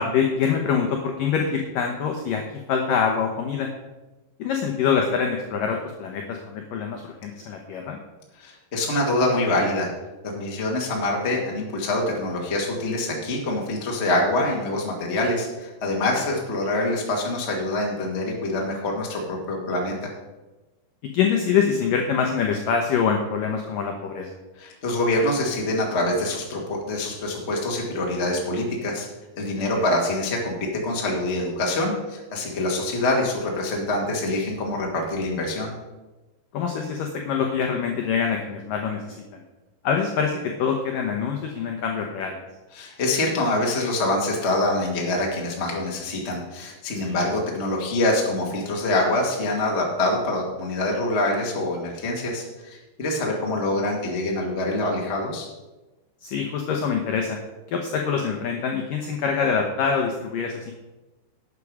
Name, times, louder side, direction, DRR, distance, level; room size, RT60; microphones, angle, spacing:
voice 1, 0.0-3.7 4.4-8.0 16.1-16.2 21.0-24.3 29.6-29.8 36.5-39.4 39.8-42.4 47.0-47.2 56.2-57.4 57.7-60.7, left 6 dB, 80° left, 2 dB, 2.0 m, -25 dB
voice 2, 8.4-9.9 10.2-20.1 24.6-29.1 29.4-30.6 30.8-35.7 42.7-55.5, left 1 dB, 40° left, -1 dB, 0.9 m, -25 dB
12.0 x 8.4 x 4.8 m, 1.1 s
omnidirectional pair, 5.2 m